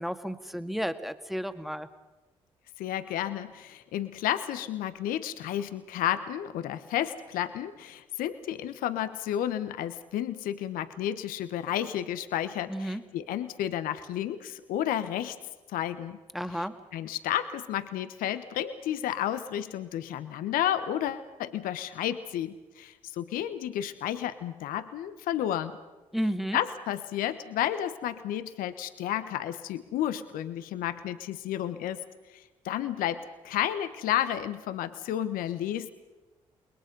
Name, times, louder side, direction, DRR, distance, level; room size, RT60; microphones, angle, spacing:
voice 1, 0.0-1.9 12.7-13.0 16.3-16.7 26.1-26.6, equal, ahead, 9 dB, 1.9 m, -32 dB
voice 2, 2.8-15.4 15.7-16.2 16.5-16.6 16.9-25.7 26.5-32.0 32.3-35.9, left 11 dB, 70° left, 12 dB, 1.1 m, -32 dB
29.0 x 21.5 x 5.4 m, 1.2 s
hypercardioid pair, 45°, 15 cm